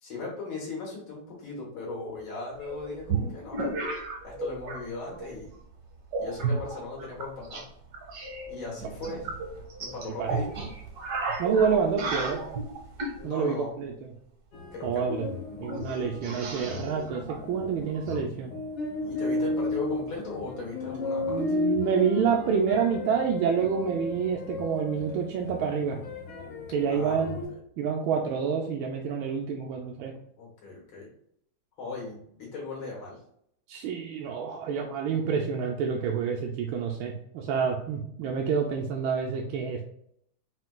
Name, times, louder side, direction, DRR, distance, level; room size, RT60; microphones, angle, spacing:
voice 1, 0.0-3.8 4.2-5.5 6.2-7.6 8.5-9.3 9.8-10.7 13.2-13.7 14.7-15.2 19.0-21.6 26.9-27.3 30.4-31.1 31.8-33.2, left 3 dB, 90° left, -3 dB, 2.2 m, -38 dB
sound 1, 2.6-4.8 5.1-5.5 6.1-7.6 7.9-13.2 14.9-15.0 15.2-15.3 15.6-18.2, right 3 dB, 60° right, 1.4 m, -33 dB
voice 2, 11.4-12.4 13.2-14.1 14.8-15.3 15.6-17.2 17.5-18.5 21.3-26.0 26.7-27.4 27.8-30.1 33.7-39.8, right 6 dB, 90° right, 1 dB, 1.4 m, -28 dB
sound 2, 14.5-27.5, left 2 dB, 60° left, 1.5 m, -34 dB
4.4 x 4.3 x 2.3 m, 0.69 s
omnidirectional pair, 2.2 m